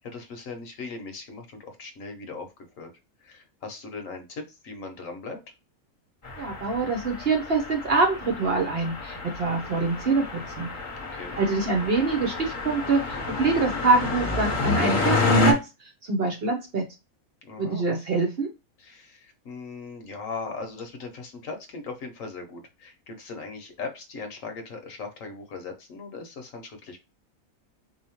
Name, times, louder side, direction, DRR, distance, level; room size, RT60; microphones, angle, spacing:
voice 1, 0.0-2.9 3.2-5.4 11.1-11.4 17.4-17.9 18.8-27.0, left 4 dB, 65° left, 5 dB, 1.2 m, -39 dB
sound 1, 6.2-15.5, left 3 dB, 35° left, 0.9 m, -28 dB
voice 2, 6.4-10.7 11.4-15.6 16.1-16.8 17.6-18.5, right 3 dB, 50° right, 4 dB, 0.8 m, -25 dB
4.3 x 2.8 x 2.9 m, 0.26 s
omnidirectional pair, 1.5 m